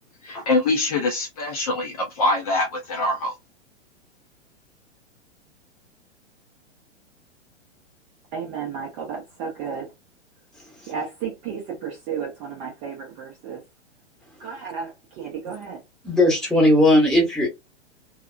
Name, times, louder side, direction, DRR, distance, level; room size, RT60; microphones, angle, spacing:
voice 1, 0.2-3.3, left 2 dB, 30° left, 0.5 m, -24 dB
voice 2, 8.3-9.9 10.9-13.6 14.4-15.8, right 6 dB, 20° right, 0.5 m, -33 dB
voice 3, 16.0-17.5, left 1 dB, ahead, 1.0 m, -17 dB
2.8 x 2.1 x 2.4 m
figure-of-eight pair, 105°, 36 cm